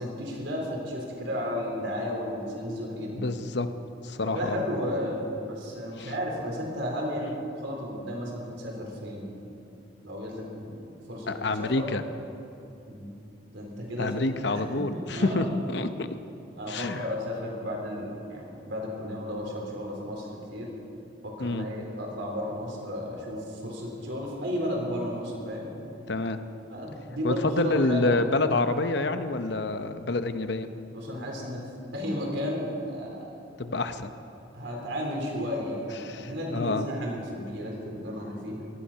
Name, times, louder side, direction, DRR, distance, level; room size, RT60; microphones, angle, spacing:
voice 1, 0.0-3.3 4.2-9.3 10.0-10.8 11.1-11.9 12.9-13.1 13.5-15.6 16.6-20.7 21.2-25.7 26.7-28.3 30.9-31.6 31.9-33.3 34.5-38.6, equal, 75° right, -1 dB, 4.0 m, -33 dB
voice 2, 3.1-3.7 4.0-4.6 6.0-6.1 11.3-12.0 14.0-16.1 16.7-17.1 21.4-21.7 26.1-26.4 27.2-30.7 33.6-34.1 36.0-36.9, left 2 dB, 65° left, 9 dB, 0.8 m, -27 dB
18.0 x 13.0 x 5.7 m, 2.7 s
head